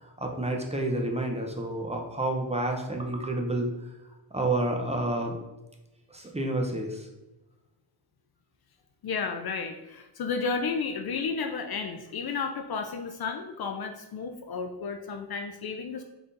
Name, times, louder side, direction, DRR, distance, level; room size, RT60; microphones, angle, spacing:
voice 1, 0.0-3.7 4.3-5.4 6.1-7.1, right 2 dB, 15° right, 1 dB, 0.7 m, -29 dB
voice 2, 9.0-16.0, left 5 dB, 55° left, 6 dB, 0.5 m, -32 dB
4.0 x 3.5 x 2.6 m, 1.0 s
cardioid pair, 55°, 48 cm